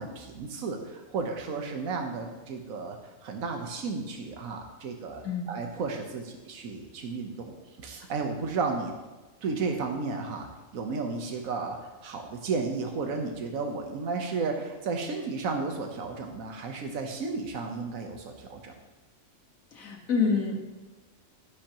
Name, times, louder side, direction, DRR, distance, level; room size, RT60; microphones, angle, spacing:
voice 1, 0.0-3.0 3.2-7.5 7.8-8.9 9.4-10.5 10.7-11.8 12.0-18.8, right 4 dB, 85° right, 4 dB, 1.4 m, -33 dB
voice 2, 19.7-20.7, left 5 dB, 80° left, 0 dB, 1.9 m, -27 dB
12.0 x 10.0 x 3.0 m, 1.2 s
omnidirectional pair, 1.4 m